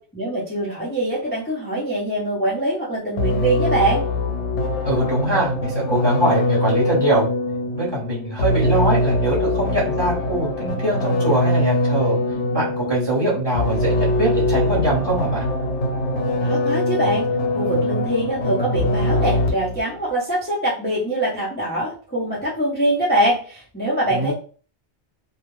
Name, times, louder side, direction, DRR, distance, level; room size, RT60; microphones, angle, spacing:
voice 1, 0.1-4.1 16.4-17.3 17.5-24.3, right 1 dB, 10° left, -7 dB, 0.6 m, -23 dB
sound 1, 3.2-19.8, left 1 dB, 85° left, 0.9 m, -22 dB
voice 2, 4.8-7.3 7.7-12.2 12.5-15.5 24.1-24.3, right 1 dB, 25° right, -7 dB, 0.9 m, -22 dB
2.3 x 2.1 x 3.0 m, 0.40 s
omnidirectional pair, 1.2 m